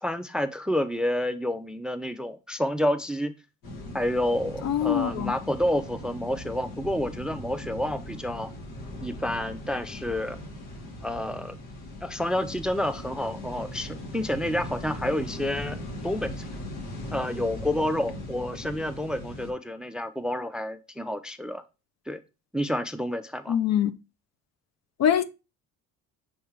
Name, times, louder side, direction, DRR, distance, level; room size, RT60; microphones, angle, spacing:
voice 1, 0.0-3.3 3.9-8.5 9.0-10.4 11.0-11.6 12.0-15.8 16.0-16.3 17.1-21.6 22.1-22.2 22.5-23.6, left 1 dB, ahead, 0.5 m, -29 dB
sound 1, 3.6-19.5, left 1 dB, 85° left, 2.6 m, -39 dB
voice 2, 4.6-5.3 23.5-23.9 25.0-25.2, left 9 dB, 50° left, 0.7 m, -23 dB
6.4 x 3.6 x 4.6 m
cardioid pair, 100°, 33 cm